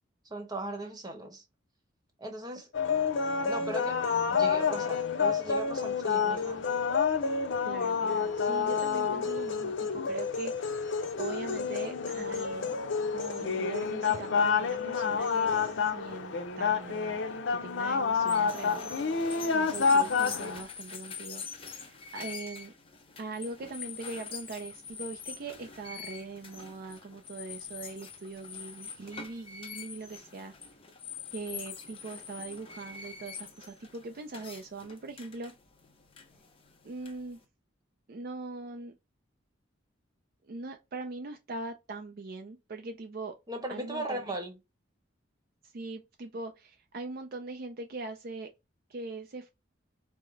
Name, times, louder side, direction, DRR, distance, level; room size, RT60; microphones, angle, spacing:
voice 1, 0.3-1.4 2.2-2.7 3.4-4.0 4.3-6.6 43.5-44.6, right 1 dB, 20° right, 1.0 m, -38 dB
sound 1, 2.7-20.6, left 5 dB, 70° left, 0.6 m, -29 dB
voice 2, 7.6-12.7 13.1-22.7 23.2-30.5 31.3-35.5 36.8-37.4 38.1-38.9 40.4-43.3 43.7-44.4 45.6-48.5 48.9-49.5, right 3 dB, 50° right, 0.4 m, -41 dB
sound 2, 18.2-37.4, left 6 dB, 30° left, 0.7 m, -45 dB
4.7 x 2.1 x 3.8 m
head